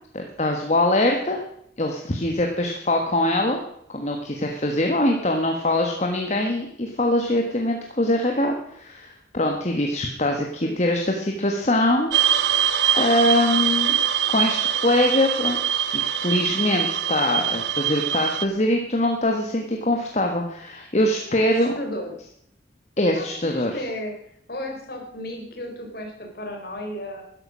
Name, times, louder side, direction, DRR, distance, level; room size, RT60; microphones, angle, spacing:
voice 1, 0.1-1.4 1.8-3.6 3.9-12.1 12.4-13.9 14.3-15.6 15.9-21.7 23.0-23.8, left 1 dB, 35° left, 2 dB, 1.4 m, -23 dB
sound 1, 12.1-18.4, right 10 dB, 70° right, 0.8 m, -23 dB
voice 2, 21.3-22.1 23.1-24.1 24.5-27.2, left 1 dB, 55° left, 2 dB, 3.9 m, -34 dB
13.0 x 11.0 x 6.3 m, 0.71 s
head